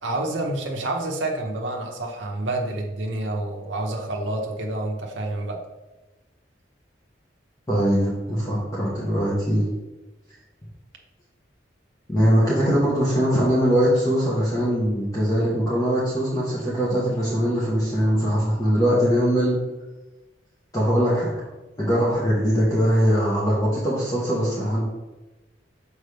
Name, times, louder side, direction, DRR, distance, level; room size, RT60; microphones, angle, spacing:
voice 1, 0.0-5.6, right 2 dB, 90° right, 1 dB, 0.9 m, -28 dB
voice 2, 7.7-9.6 12.1-19.6 20.7-21.3 21.8-24.8, equal, 20° left, -7 dB, 1.2 m, -21 dB
6.6 x 4.9 x 3.4 m, 1.1 s
head